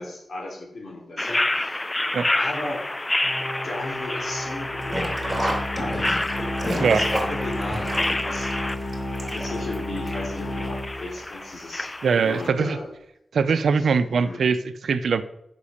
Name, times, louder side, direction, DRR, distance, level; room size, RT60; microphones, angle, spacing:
voice 1, 0.0-2.8 3.4-6.2 6.6-8.5 9.2-11.9 12.2-12.9 13.7-13.9 14.2-14.5, left 2 dB, 70° left, 0 dB, 3.1 m, -35 dB
sound 1, 1.2-12.5, left 2 dB, 20° left, 0.3 m, -29 dB
Organ, 3.2-11.3 11.7-11.8 12.4-12.5, left 1 dB, 40° left, 2.8 m, -32 dB
Sink (filling or washing), 4.8-9.8 10.1-10.2 11.2-11.3 11.6-11.7, right 1 dB, 20° right, 2.8 m, -30 dB
voice 2, 12.0-12.8 13.3-15.2, right 5 dB, 90° right, 12 dB, 0.6 m, -22 dB
8.4 x 6.0 x 6.5 m, 0.77 s
wide cardioid pair, 85°, 0 cm